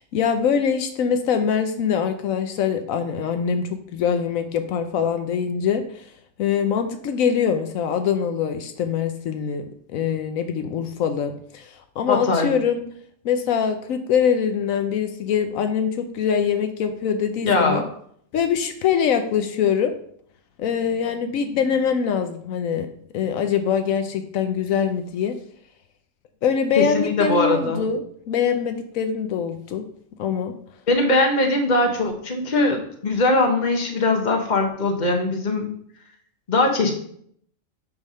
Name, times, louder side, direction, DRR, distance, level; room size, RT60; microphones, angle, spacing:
voice 1, 0.0-6.1 6.4-12.8 13.2-17.8 18.3-19.9 20.6-22.9 23.1-25.4 26.4-29.8 30.2-30.5, left 7 dB, 80° left, 7 dB, 1.1 m, -23 dB
voice 2, 12.1-12.5 17.4-17.8 26.8-27.8 30.9-35.7 36.5-36.9, left 2 dB, 35° left, 3 dB, 1.2 m, -21 dB
8.1 x 3.4 x 5.5 m, 0.64 s
omnidirectional pair, 1.4 m